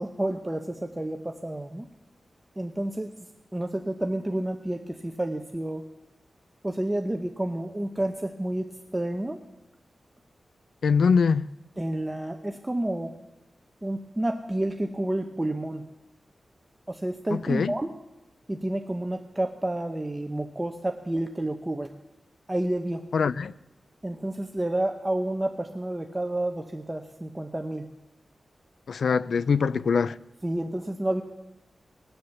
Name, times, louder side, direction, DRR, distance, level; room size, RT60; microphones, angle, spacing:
voice 1, 0.0-1.9 2.6-3.1 3.5-5.8 6.6-8.7 8.9-9.4 11.8-13.1 13.8-15.8 16.9-17.9 18.5-21.9 22.5-23.0 24.0-27.8 30.4-31.2, right 1 dB, 15° right, 0.7 m, -30 dB
voice 2, 10.8-11.5 17.3-17.7 23.1-23.5 28.9-30.2, left 5 dB, 85° left, 0.4 m, -23 dB
20.0 x 8.0 x 7.0 m
wide cardioid pair, 145°, 0 cm